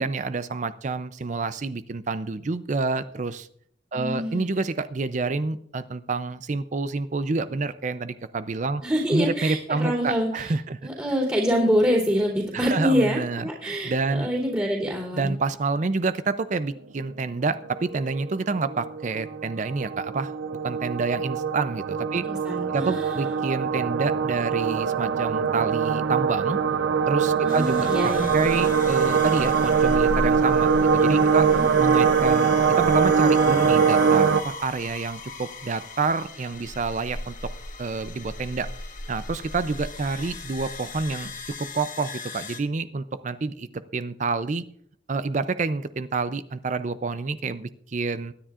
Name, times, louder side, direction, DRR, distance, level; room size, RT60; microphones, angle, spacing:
voice 1, 0.0-3.5 3.9-8.8 9.1-10.8 12.5-14.3 15.1-20.3 20.6-22.2 22.7-26.6 27.1-31.5 31.8-37.3 37.8-38.7 39.1-41.3 41.6-44.6 45.1-48.3, right 3 dB, 40° right, 13 dB, 0.5 m, -28 dB
voice 2, 3.9-4.5 8.8-10.5 10.8-15.3 22.2-23.3 27.4-28.3 31.3-31.6, equal, 15° right, -7 dB, 3.0 m, -26 dB
sound 1, 17.8-34.4, right 6 dB, 90° right, 0.6 m, -22 dB
sound 2, 27.5-42.6, left 2 dB, 45° left, 1.2 m, -36 dB
22.5 x 10.0 x 2.5 m, 0.64 s
head